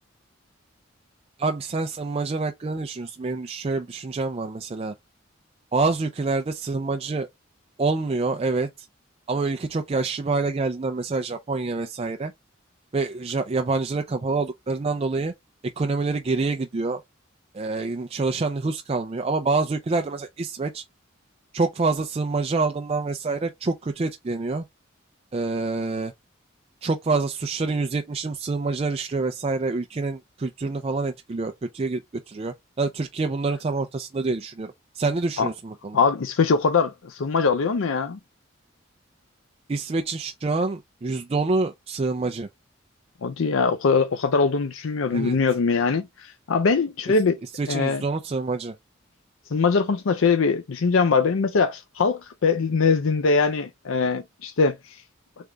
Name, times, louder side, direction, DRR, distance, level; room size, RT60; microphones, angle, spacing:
voice 1, 1.4-4.9 5.7-7.3 7.8-8.7 9.3-12.3 12.9-15.3 15.8-17.0 17.5-20.8 21.5-24.6 25.3-26.1 26.8-32.0 32.3-36.0 39.7-42.5 45.1-45.4 47.5-48.7, right 3 dB, 30° right, 0.4 m, -26 dB
voice 2, 35.9-38.2 43.2-47.4 47.7-48.0 49.5-55.0, left 4 dB, 80° left, 0.5 m, -22 dB
3.8 x 3.4 x 3.3 m
head